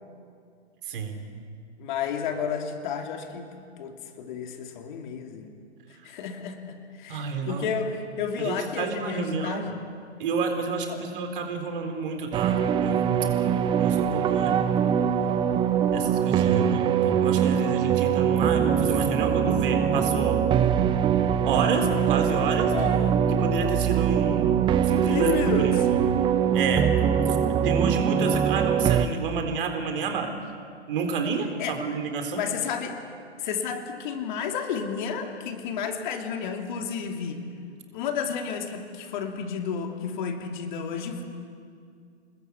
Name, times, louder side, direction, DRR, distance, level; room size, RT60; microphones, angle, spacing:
voice 1, 0.9-1.3 7.1-7.7 8.4-9.7 10.2-13.3 13.8-14.5 15.9-20.4 21.4-22.7 23.3-25.8 26.5-26.9 27.3-27.4 27.6-30.3 30.9-32.4, right 5 dB, 50° right, 5 dB, 3.9 m, -30 dB
voice 2, 1.8-5.5 6.0-9.8 10.9-11.0 16.4-16.8 22.7-23.2 25.1-25.9 31.6-31.8 32.3-33.0 33.4-37.4 37.9-41.2, left 6 dB, 45° left, 4 dB, 3.0 m, -32 dB
sound 1, 12.3-29.1, right 8 dB, 15° right, 0.7 m, -23 dB
28.0 x 20.5 x 8.3 m, 2.3 s
figure-of-eight pair, 115°, 34 cm